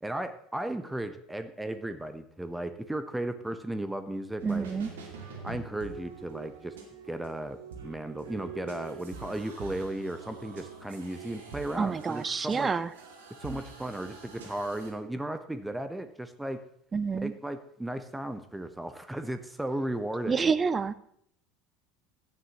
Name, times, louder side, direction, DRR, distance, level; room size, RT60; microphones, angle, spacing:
voice 1, 0.0-4.7 5.4-6.7 7.1-12.7 13.4-16.6 17.2-20.5, right 1 dB, 5° right, 10 dB, 1.0 m, -35 dB
voice 2, 4.4-4.9 11.8-12.9 16.9-17.3 20.3-20.9, right 5 dB, 25° right, 16 dB, 0.6 m, -28 dB
sound 1, 4.4-14.9, right 5 dB, 75° right, 2.4 m, -45 dB
16.5 x 11.5 x 3.0 m, 0.71 s
figure-of-eight pair, 70°, 0 cm